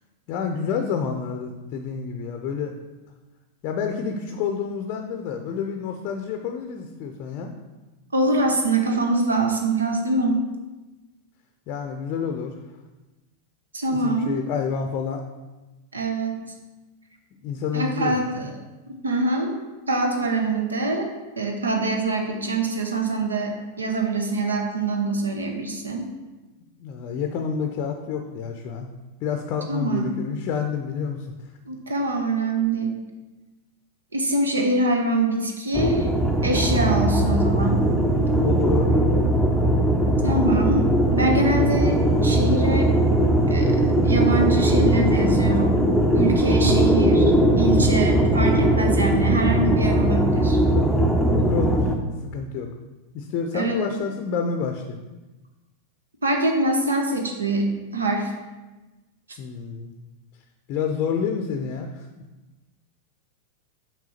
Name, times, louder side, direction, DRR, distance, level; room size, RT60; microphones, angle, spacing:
voice 1, 0.3-2.7 3.6-7.5 11.7-12.5 13.9-15.2 17.4-18.5 26.8-28.9 29.2-31.3 38.4-38.9 51.3-51.9 52.3-52.7 53.1-55.0 59.4-59.9 60.7-62.2, left 6 dB, 40° left, 4 dB, 0.6 m, -28 dB
voice 2, 8.1-10.5 13.7-14.4 15.9-16.4 17.7-18.5 18.9-19.5 19.9-21.1 21.4-26.1 29.7-30.1 31.7-33.0 34.1-36.1 36.4-37.8 40.2-42.9 43.5-45.9 46.1-50.6 53.5-53.8 56.2-58.3, right 2 dB, 75° right, 3 dB, 0.9 m, -24 dB
sound 1, 35.7-52.0, right 1 dB, ahead, 0.7 m, -19 dB
6.2 x 3.4 x 5.7 m, 1.1 s
figure-of-eight pair, 90°, 0 cm